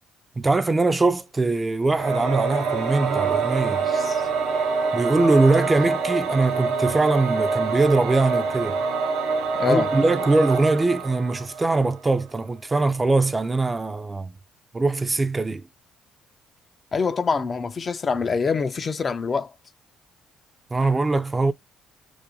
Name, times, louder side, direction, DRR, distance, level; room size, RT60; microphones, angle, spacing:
voice 1, 0.4-3.8 4.9-8.8 9.7-14.3 14.7-15.6 20.7-21.5, right 3 dB, 25° right, 0.4 m, -22 dB
Singing / Musical instrument, 1.9-12.0, right 4 dB, 80° right, 0.7 m, -25 dB
voice 2, 3.9-4.3 9.6-9.9 16.9-19.5, left 5 dB, 40° left, 0.4 m, -25 dB
2.4 x 2.2 x 2.9 m
supercardioid pair, 60°, 0 cm